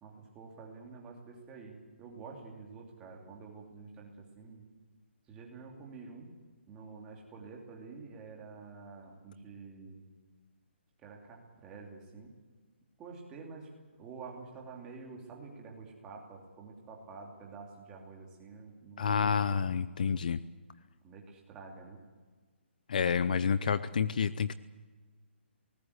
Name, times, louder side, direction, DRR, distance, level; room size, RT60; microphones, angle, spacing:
voice 1, 0.0-4.7 5.3-6.4 6.7-10.1 11.0-12.4 13.0-13.7 14.0-19.6 21.0-22.0, right 4 dB, 10° right, -1 dB, 2.9 m, -48 dB
voice 2, 19.0-20.4 22.9-24.5, left 6 dB, 45° left, 14 dB, 0.7 m, -29 dB
22.0 x 19.0 x 8.2 m, 1.4 s
hypercardioid pair, 175°, 6 cm